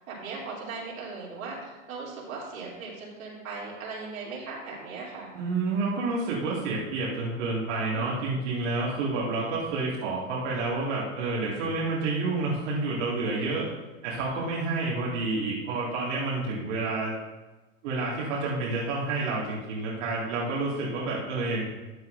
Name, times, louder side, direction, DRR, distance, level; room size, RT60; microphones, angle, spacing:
voice 1, 0.0-5.3 7.9-8.4 13.3-13.7, right 4 dB, 80° right, -4 dB, 3.2 m, -38 dB
voice 2, 5.3-13.7 14.0-17.1 17.8-21.7, right 3 dB, 60° right, -6 dB, 2.3 m, -29 dB
13.0 x 7.9 x 2.6 m, 1.2 s
hypercardioid pair, 110°, 41 cm